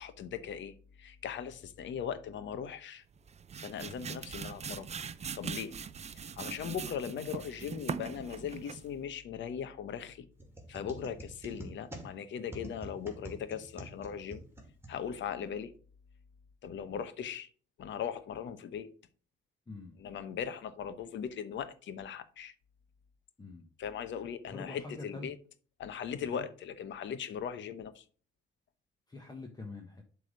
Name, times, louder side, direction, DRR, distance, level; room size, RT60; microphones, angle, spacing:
voice 1, 0.0-3.0 3.6-4.9 5.4-5.7 6.1-10.3 10.7-14.4 14.9-15.7 16.6-17.5 17.8-18.9 20.0-22.5 23.8-25.3 25.8-28.0, left 8 dB, 70° left, 0.9 m, -39 dB
sound 1, 3.1-9.0, right 6 dB, 35° right, 0.5 m, -41 dB
sound 2, 10.4-15.5, right 1 dB, 10° right, 2.3 m, -48 dB
voice 2, 24.5-25.3 26.3-26.5 29.1-30.0, left 3 dB, 20° left, 1.2 m, -45 dB
7.6 x 3.6 x 6.4 m
cardioid pair, 90°, 20 cm